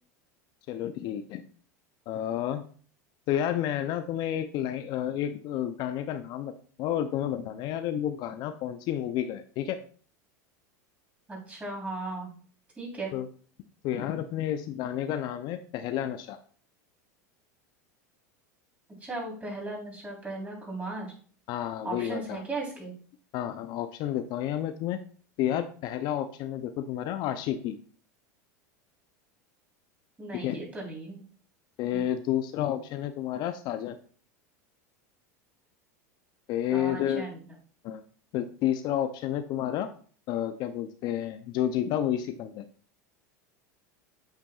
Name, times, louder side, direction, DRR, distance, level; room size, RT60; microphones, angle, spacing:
voice 1, 0.7-1.4 2.1-2.6 3.3-6.5 6.8-9.8 13.1-13.3 13.8-16.4 21.5-22.4 23.3-25.0 25.4-27.8 30.4-30.6 31.8-34.0 36.5-37.2 37.8-38.0 38.3-39.9 40.3-42.6, left 11 dB, 50° left, 10 dB, 0.5 m, -30 dB
voice 2, 11.3-12.3 12.8-13.1 19.0-21.1 21.8-22.9 30.2-31.2 36.7-37.5, right 2 dB, 15° right, -2 dB, 3.5 m, -37 dB
8.4 x 5.8 x 2.4 m, 0.44 s
hypercardioid pair, 100°, 9 cm